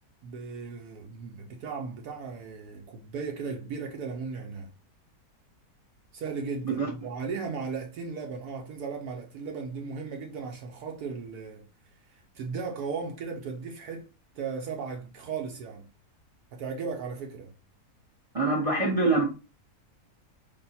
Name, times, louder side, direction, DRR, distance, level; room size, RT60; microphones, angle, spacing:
voice 1, 0.2-4.7 6.1-11.6 12.1-14.1 14.3-15.8 16.5-17.5, right 5 dB, 75° right, 1.1 m, -36 dB
voice 2, 18.3-19.2, right 3 dB, 45° right, 0.4 m, -24 dB
3.4 x 2.5 x 4.0 m
omnidirectional pair, 1.7 m